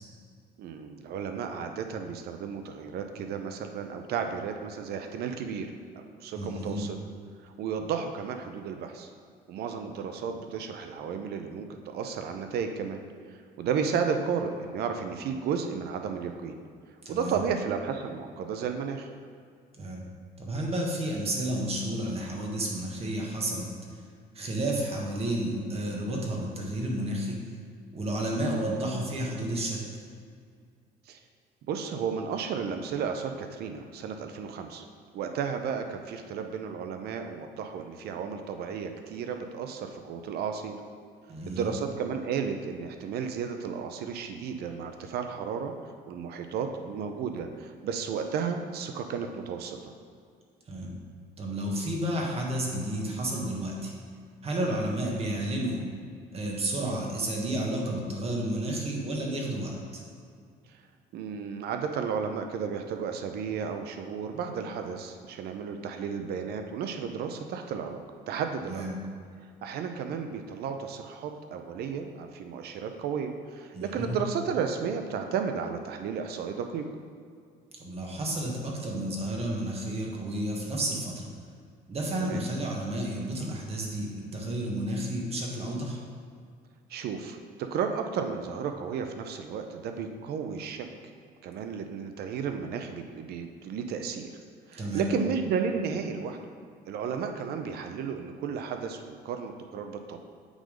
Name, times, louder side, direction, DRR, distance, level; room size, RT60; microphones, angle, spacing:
voice 1, 0.6-5.7 5.9-7.0 7.4-9.1 9.5-13.0 13.3-16.6 17.1-19.1 31.1-31.2 31.7-34.8 35.1-40.8 41.5-45.7 46.1-49.9 61.1-68.0 68.3-68.9 69.6-76.9 82.2-82.4 86.9-90.9 91.4-94.3 94.7-96.4 96.9-100.2, right 6 dB, 70° right, 6 dB, 0.6 m, -33 dB
voice 2, 6.3-6.9 17.0-17.4 19.8-20.0 20.4-23.7 24.3-27.4 27.9-29.8 41.3-41.7 50.7-50.9 51.4-53.9 54.4-55.8 56.3-60.0 68.6-68.9 73.7-74.2 77.8-81.3 81.9-86.0 94.8-95.1, right 1 dB, 35° right, -1 dB, 1.6 m, -31 dB
8.2 x 3.9 x 5.1 m, 2.2 s
cardioid pair, 110°, 17 cm